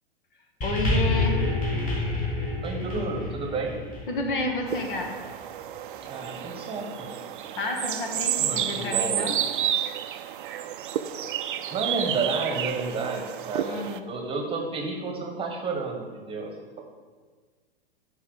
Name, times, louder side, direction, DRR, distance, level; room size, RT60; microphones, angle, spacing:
voice 1, 0.6-1.4 3.0-3.1 4.1-5.1 7.6-9.4 13.6-14.0, left 2 dB, 55° left, 3 dB, 1.4 m, -30 dB
sound 1, 0.6-5.2 6.0-6.1, left 2 dB, 25° left, 2.3 m, -28 dB
voice 2, 2.6-3.8 6.0-7.1 8.4-9.5 11.7-16.5, right 4 dB, 15° right, 1 dB, 1.2 m, -31 dB
sound 2, 4.7-14.0, right 10 dB, 55° right, 0.5 m, -31 dB
9.8 x 3.4 x 6.9 m, 1.5 s
figure-of-eight pair, 100°, 31 cm